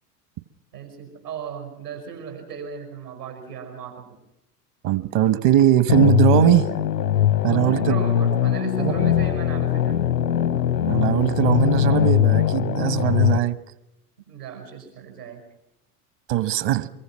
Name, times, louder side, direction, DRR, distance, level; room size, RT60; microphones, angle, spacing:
voice 1, 0.7-4.2 7.4-10.0 14.3-15.4, right 7 dB, 80° right, 5 dB, 5.7 m, -36 dB
voice 2, 4.8-6.7 7.4-7.9 8.8-8.9 10.9-13.6 16.3-16.9, right 12 dB, 50° right, 16 dB, 1.2 m, -20 dB
sound 1, 5.9-13.4, left 10 dB, 85° left, 1.0 m, -21 dB
24.5 x 23.0 x 5.8 m, 0.83 s
figure-of-eight pair, 80°, 47 cm